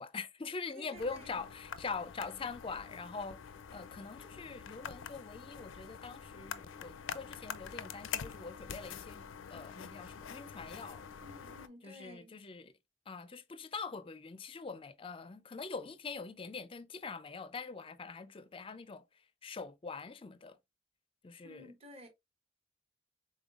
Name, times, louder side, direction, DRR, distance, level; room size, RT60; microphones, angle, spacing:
voice 1, 0.0-3.4 3.7-11.0 11.8-12.7 13.1-19.0 19.4-20.6 21.2-21.7, left 4 dB, 30° left, 0.4 m, -43 dB
voice 2, 0.7-1.4 11.2-12.4 21.4-22.1, left 1 dB, 30° right, 1.1 m, -53 dB
sound 1, 0.9-11.7, left 7 dB, 90° left, 0.5 m, -46 dB
5.3 x 3.9 x 2.4 m
head